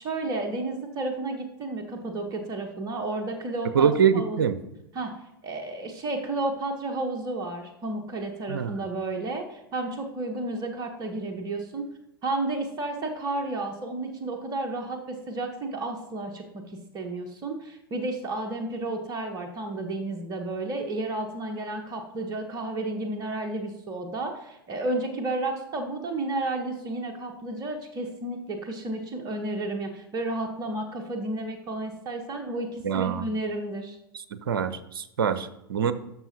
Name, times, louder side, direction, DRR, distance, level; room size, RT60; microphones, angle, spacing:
voice 1, 0.0-4.5 4.9-5.1 5.4-11.9 12.2-16.6 16.9-34.0, right 2 dB, 30° right, 4 dB, 1.1 m, -32 dB
voice 2, 3.7-4.6 8.5-8.8 32.8-33.2 34.3-35.9, right 7 dB, 70° right, 13 dB, 0.6 m, -24 dB
12.5 x 6.0 x 2.9 m, 0.86 s
figure-of-eight pair, 90°, 12 cm